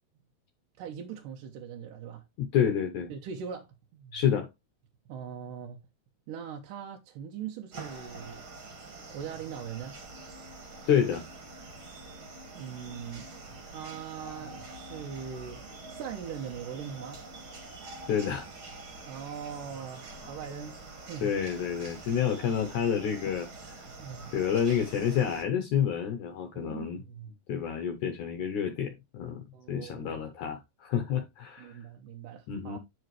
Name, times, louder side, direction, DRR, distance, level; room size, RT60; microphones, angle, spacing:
voice 1, 0.8-2.2 3.1-4.2 5.1-5.8 6.3-8.4 9.1-10.0 12.5-13.3 13.7-15.6 15.9-17.2 19.0-21.3 23.9-24.3 26.5-27.3 29.5-30.2 31.6-32.8, right 7 dB, 70° right, 2.3 m, -41 dB
voice 2, 2.4-3.1 4.1-4.5 10.9-11.3 18.1-18.5 21.2-23.5 24.3-27.0 27.5-31.8 32.5-32.8, left 8 dB, 70° left, 1.9 m, -29 dB
sound 1, 7.7-25.4, right 2 dB, 45° right, 2.0 m, -46 dB
9.5 x 5.5 x 3.1 m
omnidirectional pair, 4.3 m